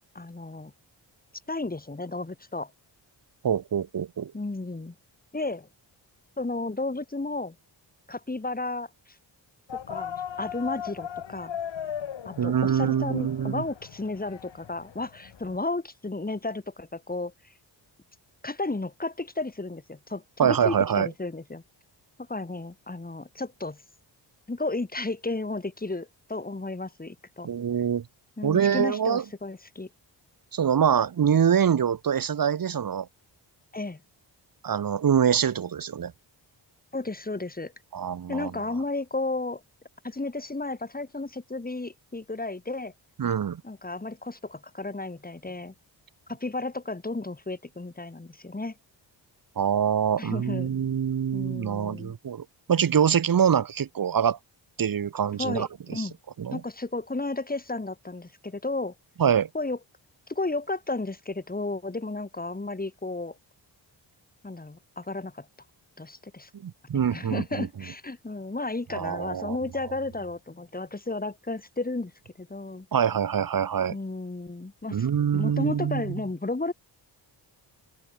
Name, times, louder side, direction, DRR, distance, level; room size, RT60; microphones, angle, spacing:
voice 1, 0.2-0.7 1.5-2.7 4.3-4.9 5.3-5.7 6.4-7.6 8.1-8.9 9.9-11.5 12.3-17.3 18.4-21.6 22.3-23.8 24.5-27.5 28.4-29.9 33.7-34.0 36.9-37.7 38.3-39.6 40.0-42.9 43.6-45.7 46.3-48.7 50.2-50.7 51.3-52.2 55.4-56.2 56.5-58.9 59.5-59.8 60.3-63.4 64.4-65.5 66.0-66.5 66.9-72.1 72.4-72.9 73.9-75.1 75.3-76.7, left 2 dB, 20° left, 3.6 m, -33 dB
voice 2, 3.4-4.3 12.4-13.6 20.4-21.1 27.4-28.0 28.4-29.2 30.5-33.1 34.6-36.1 37.9-38.5 43.2-43.6 49.6-54.4 54.8-56.1 56.4-56.6 59.2-59.5 66.6-67.7 68.9-69.6 72.9-74.0 74.9-76.2, right 8 dB, 50° right, 1.1 m, -25 dB
sound 1, 9.7-15.6, left 9 dB, 75° left, 4.8 m, -38 dB
open air
cardioid pair, 90°, 45 cm